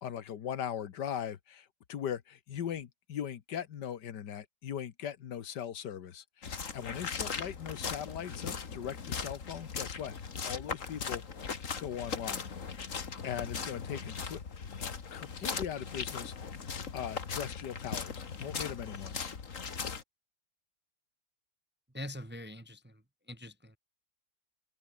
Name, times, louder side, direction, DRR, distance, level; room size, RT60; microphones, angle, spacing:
voice 1, 0.0-10.2 10.4-11.2 11.8-12.5 13.2-14.4 15.1-16.7 16.9-19.2, left 9 dB, 90° left, 1.8 m, -39 dB
sound 1, 6.4-20.0, left 5 dB, 50° left, 2.1 m, -39 dB
voice 2, 21.9-23.0 23.3-23.8, left 1 dB, 10° right, 0.7 m, -43 dB
omnidirectional pair, 1.8 m